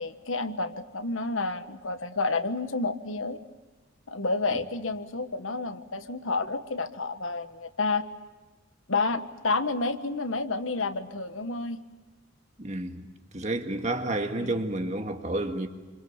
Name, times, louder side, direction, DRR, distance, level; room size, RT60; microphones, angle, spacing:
voice 1, 0.0-3.4 4.1-8.1 8.9-11.8 14.3-14.5, left 3 dB, 80° left, 1.4 m, -30 dB
voice 2, 12.6-13.0 13.3-15.7, right 2 dB, 35° right, 1.9 m, -30 dB
28.0 x 25.5 x 7.2 m
head